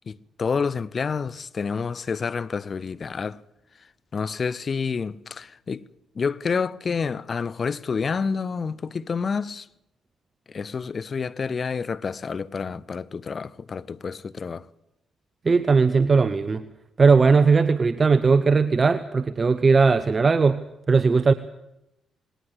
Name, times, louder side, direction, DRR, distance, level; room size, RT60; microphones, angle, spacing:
voice 1, 0.1-3.4 4.1-5.8 6.2-9.7 10.5-14.7, left 5 dB, 45° left, 0.9 m, -28 dB
voice 2, 15.4-16.6 17.0-20.6 20.9-21.3, right 4 dB, 40° right, 0.9 m, -18 dB
19.5 x 18.5 x 8.1 m
hypercardioid pair, 45°, 0 cm